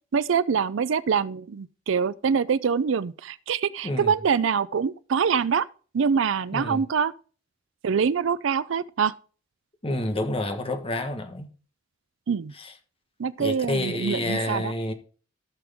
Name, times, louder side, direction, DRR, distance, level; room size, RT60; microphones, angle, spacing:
voice 1, 0.1-5.7 5.9-7.1 7.8-9.1 12.3-12.5 13.2-14.7, right 6 dB, 70° right, 0.4 m, -24 dB
voice 2, 9.8-11.5 12.6-12.7 13.4-14.9, left 1 dB, 30° left, 1.3 m, -28 dB
15.5 x 6.1 x 3.5 m
head